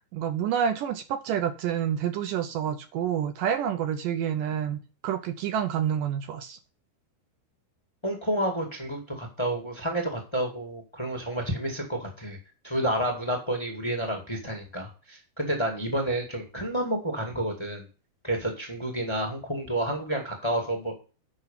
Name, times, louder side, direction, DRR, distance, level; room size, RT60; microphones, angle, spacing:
voice 1, 0.1-6.6, right 9 dB, 75° right, 2.1 m, -28 dB
voice 2, 8.0-12.4 12.6-17.9 18.2-20.9, right 1 dB, 20° left, 0.6 m, -30 dB
8.9 x 5.6 x 5.4 m
omnidirectional pair, 4.5 m